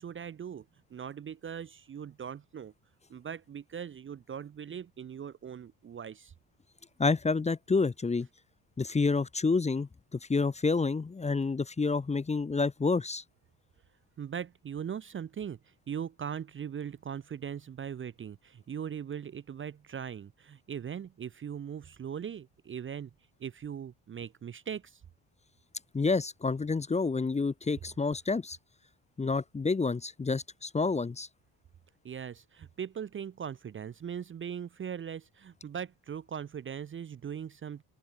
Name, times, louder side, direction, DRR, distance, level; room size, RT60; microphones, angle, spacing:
voice 1, 0.0-2.7 3.1-6.3 14.2-23.1 23.4-25.0 32.0-37.8, right 8 dB, 30° right, 0.6 m, -40 dB
voice 2, 7.0-8.3 8.8-13.2 25.9-28.6 29.2-31.3, left 4 dB, 15° left, 0.8 m, -29 dB
open air
cardioid pair, 115°, 39 cm